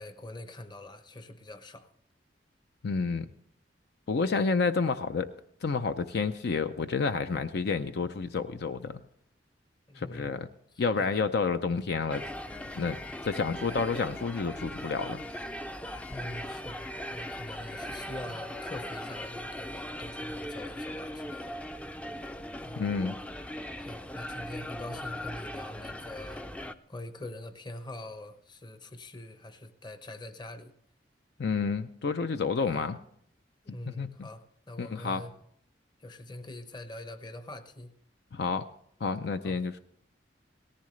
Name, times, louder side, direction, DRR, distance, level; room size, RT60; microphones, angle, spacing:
voice 1, 0.0-1.9 9.9-10.4 10.7-11.2 16.1-21.6 22.6-22.8 23.8-26.5 26.9-30.7 32.7-32.9 33.6-35.3 36.0-37.9 39.4-39.6, left 1 dB, 25° left, 9 dB, 0.8 m, -44 dB
voice 2, 2.8-3.3 4.1-5.3 5.6-9.0 10.0-10.5 10.8-12.2 12.8-13.0 13.2-15.2 22.8-23.1 31.4-33.0 33.7-34.3 34.8-35.2 38.3-38.7 39.0-39.8, left 4 dB, 65° left, 10 dB, 0.5 m, -29 dB
sound 1, 12.1-26.7, left 1 dB, 5° left, 0.4 m, -39 dB
18.0 x 14.0 x 3.2 m, 0.68 s
head